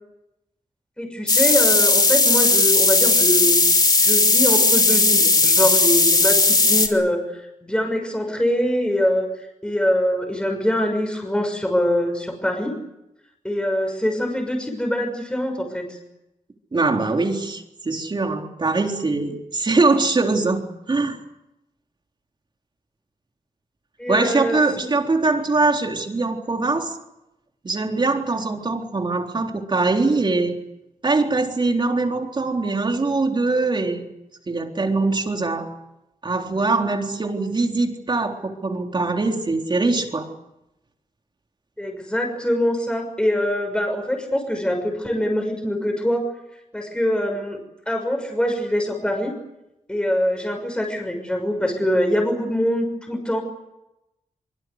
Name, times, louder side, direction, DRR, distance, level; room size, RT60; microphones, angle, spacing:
voice 1, 1.0-3.6 4.0-12.7 13.4-16.0 24.0-24.9 41.8-46.2 46.7-47.6 47.9-49.3 49.9-53.4, equal, 5° left, 3 dB, 6.2 m, -24 dB
sound 1, 1.3-6.9, left 3 dB, 30° left, 3.7 m, -16 dB
voice 2, 16.7-20.6 20.9-21.2 24.1-27.0 27.6-30.6 31.0-34.0 34.5-35.7 36.2-40.3, right 3 dB, 35° right, 2 dB, 3.9 m, -22 dB
24.5 x 24.0 x 8.1 m, 0.89 s
wide cardioid pair, 130°, 14 cm